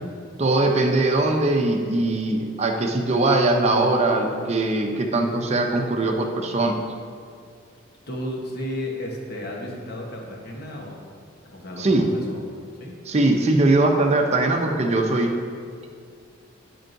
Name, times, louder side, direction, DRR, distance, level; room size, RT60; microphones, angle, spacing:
voice 1, 0.4-6.8 11.8-12.1 13.1-15.3, right 2 dB, 35° right, 2 dB, 0.6 m, -21 dB
voice 2, 8.1-11.0 11.5-12.4 12.8-13.0, left 1 dB, 55° left, -1 dB, 1.0 m, -33 dB
10.5 x 4.5 x 2.6 m, 2.2 s
head